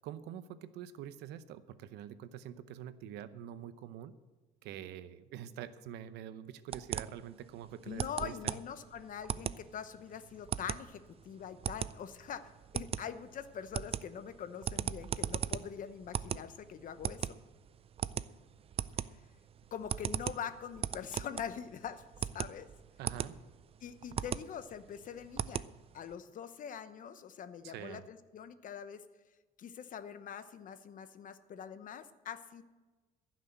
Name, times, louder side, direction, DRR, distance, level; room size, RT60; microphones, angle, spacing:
voice 1, 0.0-4.1 4.6-8.5 23.0-23.3 27.6-28.0, right 10 dB, 85° right, 13 dB, 0.8 m, -46 dB
sound 1, 6.7-26.1, right 8 dB, 35° right, 0.4 m, -39 dB
voice 2, 7.9-17.4 19.7-22.0 22.3-22.7 23.8-25.7 25.9-29.0 29.6-32.6, left 8 dB, 50° left, 12 dB, 0.9 m, -44 dB
15.0 x 6.3 x 8.0 m, 1.2 s
cardioid pair, 110°, 17 cm